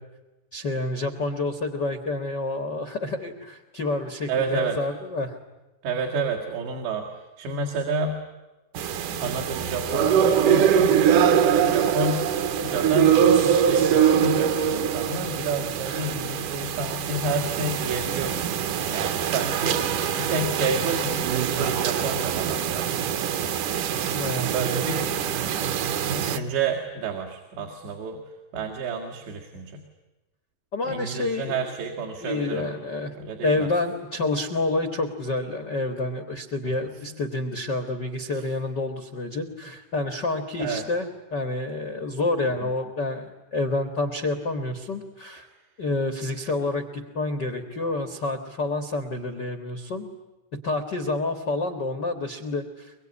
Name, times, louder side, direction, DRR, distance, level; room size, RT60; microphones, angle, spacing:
voice 1, 0.5-5.4 24.1-24.5 30.7-31.6 32.2-33.1 33.4-45.5 45.8-50.1 50.5-52.9, left 2 dB, 80° left, 7 dB, 0.9 m, -28 dB
voice 2, 4.3-4.8 5.8-8.2 9.1-10.9 11.6-12.3 12.6-19.9 20.2-23.1 24.5-25.1 26.1-28.2 28.5-29.8 30.8-32.7 33.2-33.7 36.8-37.2 38.3-38.5 40.6-40.8 42.6-42.7, right 3 dB, 80° right, 2 dB, 4.3 m, -30 dB
sound 1, 8.7-26.4, right 8 dB, 65° right, 2.2 m, -23 dB
23.5 x 23.5 x 9.8 m, 1.1 s
omnidirectional pair, 4.9 m